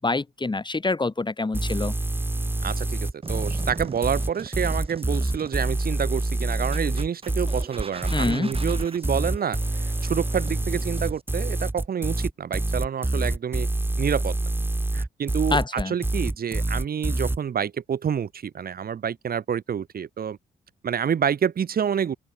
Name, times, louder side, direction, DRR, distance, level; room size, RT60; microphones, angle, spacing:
voice 1, 0.0-1.9 8.1-8.5 15.5-15.9, left 3 dB, 25° left, 5.7 m, -26 dB
sound 1, 1.5-17.4, right 2 dB, 10° right, 1.3 m, -26 dB
voice 2, 2.6-13.7 14.0-14.4 14.9-20.4 20.8-22.2, right 8 dB, 60° right, 4.0 m, -28 dB
sound 2, 3.2-11.2, right 4 dB, 30° right, 2.8 m, -41 dB
open air
supercardioid pair, 60°, 18 cm